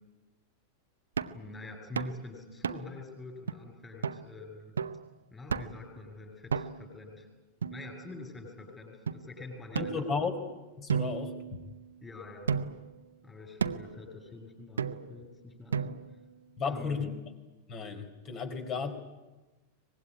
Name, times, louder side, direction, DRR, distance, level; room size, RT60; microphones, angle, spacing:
sound 1, 1.2-1.4 1.9-2.2 2.6-3.0 3.5-3.6 4.0-4.2 4.8-5.0 5.5-5.9 6.5-6.9 7.6-8.3 9.1-9.2 9.7-10.4 10.9-11.9 12.5-12.9 13.6-14.0 14.8-15.2 15.7-16.2, right 6 dB, 70° right, 0.9 m, -34 dB
voice 1, 1.3-4.7 5.3-7.3 7.7-10.3 12.0-12.8 13.2-16.0 16.6-17.1, left 3 dB, 15° left, 5 dB, 7.6 m, -46 dB
voice 2, 9.8-10.3 10.8-11.6 16.6-17.1 17.7-18.9, left 5 dB, 30° left, 7 dB, 4.3 m, -34 dB
24.0 x 20.5 x 9.9 m, 1.1 s
figure-of-eight pair, 90°, 0 cm